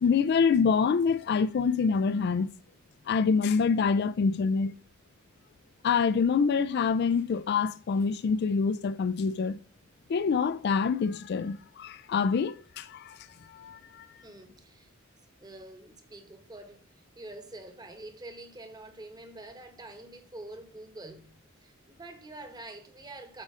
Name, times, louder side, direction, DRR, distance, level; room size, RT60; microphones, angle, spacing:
voice 1, 0.0-2.5 3.1-4.7 5.8-9.6 10.1-13.2 13.5-14.0, left 5 dB, 55° left, 0.3 m, -26 dB
voice 2, 14.2-14.9 15.4-16.8 17.2-23.4, right 2 dB, 20° right, 1.1 m, -46 dB
8.2 x 5.0 x 3.6 m
head